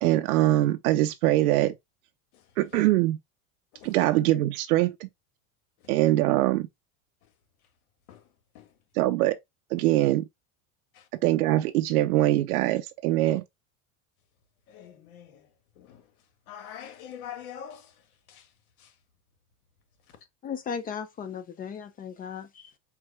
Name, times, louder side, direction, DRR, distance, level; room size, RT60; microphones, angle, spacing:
voice 1, 0.0-1.7 2.6-3.2 3.8-4.9 5.9-6.7 9.0-9.4 9.7-10.2 11.2-13.4, right 15 dB, 85° right, 0.7 m, -23 dB
voice 2, 2.3-2.8 3.7-4.0 5.8-5.9 7.2-7.3 8.1-8.3 8.5-8.8 9.8-9.9 10.9-11.1 14.7-18.5 18.8-19.0 20.1-20.2, left 9 dB, 80° left, 1.5 m, -46 dB
voice 3, 20.4-22.8, left 7 dB, 20° left, 0.4 m, -36 dB
4.6 x 2.4 x 4.6 m
supercardioid pair, 130°, 43 cm